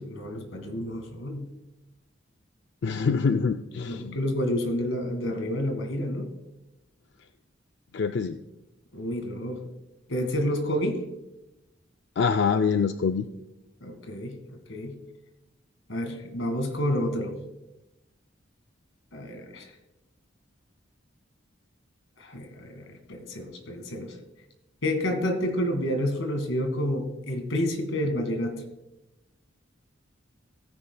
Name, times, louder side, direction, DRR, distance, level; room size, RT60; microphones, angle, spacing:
voice 1, 0.0-1.4 3.9-6.3 8.9-9.6 10.1-11.0 13.8-14.4 14.7-14.9 15.9-17.3 19.1-19.7 22.2-24.2 24.8-28.6, equal, 90° left, 5 dB, 1.9 m, -29 dB
voice 2, 2.8-4.2 7.9-8.4 12.2-13.3, left 5 dB, 60° left, 8 dB, 0.4 m, -25 dB
16.0 x 9.7 x 2.3 m, 0.99 s
head